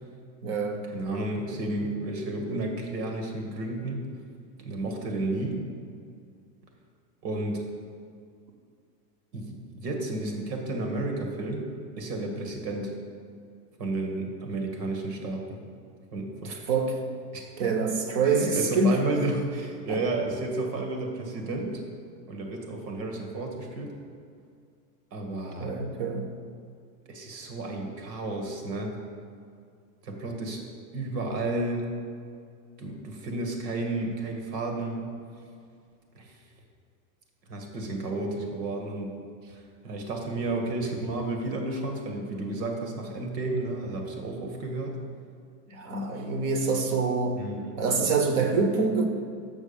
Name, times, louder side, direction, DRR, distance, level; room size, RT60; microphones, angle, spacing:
voice 1, 0.4-0.8 16.4-17.0 17.6-18.9 19.9-20.0 25.6-26.3 45.7-47.4 47.8-49.1, right 4 dB, 35° right, 4 dB, 0.8 m, -25 dB
voice 2, 0.9-4.0 4.6-5.6 7.2-7.6 9.3-11.7 12.0-12.9 13.8-15.4 16.1-16.7 17.3-17.4 18.2-21.8 22.3-23.9 25.1-25.8 27.1-29.0 30.0-30.6 30.9-31.9 32.8-35.1 36.2-36.4 37.5-39.1 39.5-45.0 47.4-47.8, right 2 dB, 85° right, 2 dB, 1.9 m, -32 dB
6.3 x 6.0 x 7.1 m, 2.3 s
supercardioid pair, 170°, 48 cm